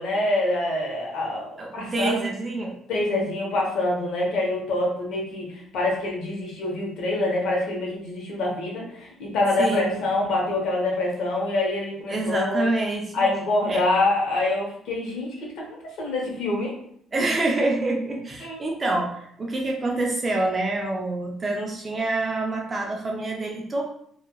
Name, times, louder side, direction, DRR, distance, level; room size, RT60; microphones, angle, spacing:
voice 1, 0.0-2.1 2.9-12.7 13.1-15.7 16.0-16.7 18.4-18.6, left 2 dB, 70° left, -2 dB, 0.8 m, -25 dB
voice 2, 1.6-2.7 9.6-9.9 12.1-13.3 13.7-13.8 17.1-23.8, right 2 dB, 20° right, 0 dB, 0.4 m, -26 dB
2.8 x 2.3 x 2.2 m, 0.67 s
cardioid pair, 170°, 0 cm